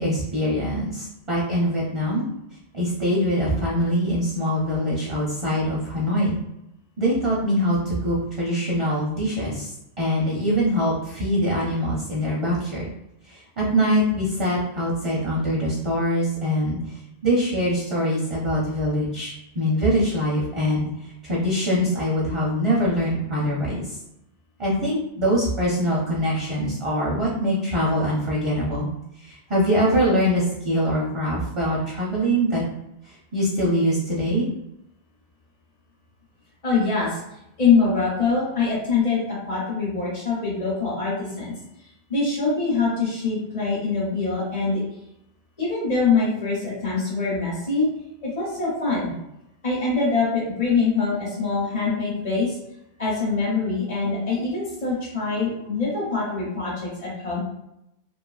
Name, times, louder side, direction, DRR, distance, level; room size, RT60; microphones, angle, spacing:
voice 1, 0.0-2.2 2.7-6.4 7.0-9.7 10.0-12.9 13.3-16.9 17.2-24.0 24.6-28.9 29.2-32.6 33.0-34.5, equal, 40° right, -5 dB, 0.4 m, -23 dB
voice 2, 36.6-37.2 37.6-39.2 39.5-41.5 42.1-44.8 45.6-47.9 48.2-49.1 49.6-52.6 53.0-57.4, left 4 dB, 35° left, -7 dB, 0.8 m, -24 dB
2.7 x 2.4 x 2.3 m, 0.84 s
omnidirectional pair, 1.1 m